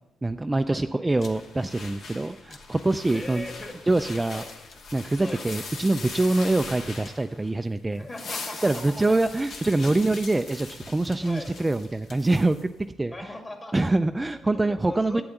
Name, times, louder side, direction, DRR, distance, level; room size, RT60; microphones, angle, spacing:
voice 1, 0.2-3.5 3.9-4.4 4.9-8.1 8.6-12.7 13.0-13.3 13.7-15.2, right 2 dB, 15° right, 9 dB, 0.3 m, -24 dB
sound 1, 1.2-7.6 7.9-12.6, left 4 dB, 65° left, 1.9 m, -41 dB
sound 2, 1.2-1.4 2.5-2.6 3.9-4.0 4.5-5.4 6.4-6.5 7.0-7.3 8.2-8.3 9.0-9.1 9.5-10.8 11.1-11.3 11.5-12.2, left 4 dB, 50° left, 1.2 m, -51 dB
voice 2, 3.1-3.8 4.3-4.5 5.2-5.4 7.9-9.1 10.2-10.4 11.2-11.5 13.1-13.9 14.3-15.2, left 2 dB, 25° left, 4 dB, 2.1 m, -39 dB
8.6 x 7.8 x 7.2 m, 1.0 s
cardioid pair, 90°, 0 cm